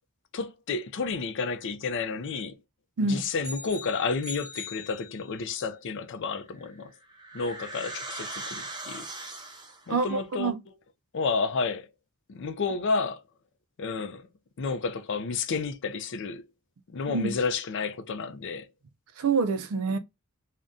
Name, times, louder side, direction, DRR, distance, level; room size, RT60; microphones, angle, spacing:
voice 1, 0.3-2.6 3.0-6.9 7.3-9.1 9.9-10.5 11.1-11.9 12.3-13.2 13.8-14.3 14.6-16.5 16.9-18.7, left 4 dB, 55° left, 0.4 m, -31 dB
sound 1, 3.4-5.6, left 4 dB, 10° left, 1.3 m, -42 dB
sound 2, 6.5-10.0, right 2 dB, 20° right, 0.6 m, -40 dB
voice 2, 9.9-10.6 17.1-17.4 19.2-20.0, right 4 dB, 70° right, 0.4 m, -26 dB
2.6 x 2.1 x 3.5 m
head